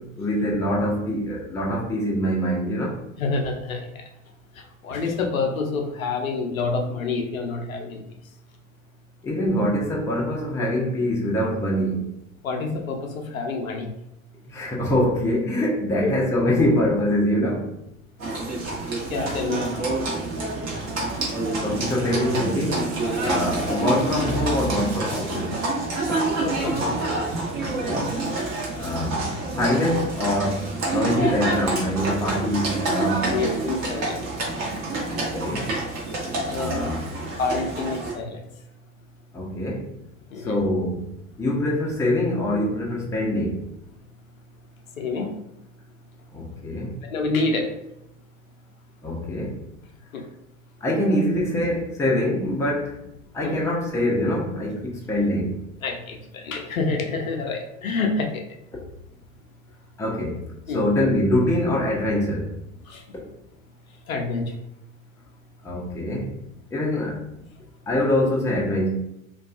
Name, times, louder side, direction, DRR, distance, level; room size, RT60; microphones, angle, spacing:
voice 1, 0.0-3.0 9.2-12.1 14.5-17.7 21.6-22.8 23.2-25.6 27.6-28.1 28.7-29.2 29.5-33.5 35.4-35.7 36.5-37.0 39.3-39.9 40.4-41.1 41.4-43.6 46.3-47.0 49.0-49.6 50.8-53.0 53.3-55.6 58.7-58.8 60.0-60.4 60.7-62.5 65.6-66.3 66.7-67.2 67.9-68.9, left 1 dB, 10° left, -3 dB, 0.4 m, -24 dB
voice 2, 3.2-3.8 4.8-8.0 12.4-13.0 13.3-13.9 16.0-16.1 19.1-19.9 26.4-27.0 33.3-34.2 36.5-36.9 37.4-38.4 40.3-40.6 45.0-45.3 47.1-47.6 50.1-50.2 53.4-53.6 55.8-56.2 56.4-58.4 60.7-60.8 62.9-63.0 64.1-64.4, left 3 dB, 85° left, 2 dB, 0.5 m, -27 dB
Livestock farm animals working animals, 18.2-38.1, right 2 dB, 40° right, 0.9 m, -27 dB
2.3 x 2.3 x 2.3 m, 0.81 s
figure-of-eight pair, 80°, 40 cm